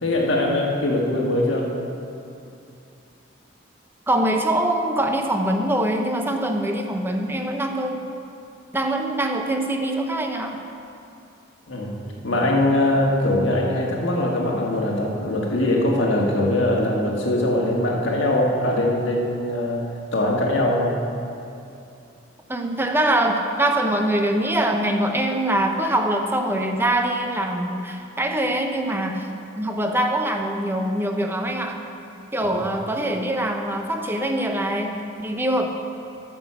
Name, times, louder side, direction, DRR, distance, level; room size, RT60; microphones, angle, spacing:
voice 1, 0.0-1.7 11.7-11.9 12.2-19.9 20.1-20.9 32.4-32.6, left 1 dB, 75° left, -2 dB, 1.6 m, -22 dB
voice 2, 4.1-8.0 8.7-10.6 22.5-29.3 29.6-31.8 32.3-35.7, right 1 dB, 10° right, 3 dB, 0.6 m, -23 dB
9.4 x 6.1 x 6.8 m, 2.7 s
head